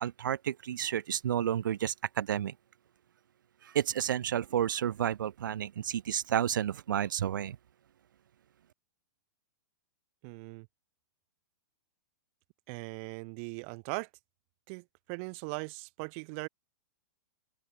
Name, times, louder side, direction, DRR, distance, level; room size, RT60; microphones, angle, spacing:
voice 1, 0.0-2.5 3.7-7.6, right 10 dB, 85° right, 0.4 m, -31 dB
voice 2, 10.2-10.7 12.7-14.1 14.7-16.5, right 35 dB, 45° right, 1.4 m, -39 dB
open air
hypercardioid pair, 135°, 10 cm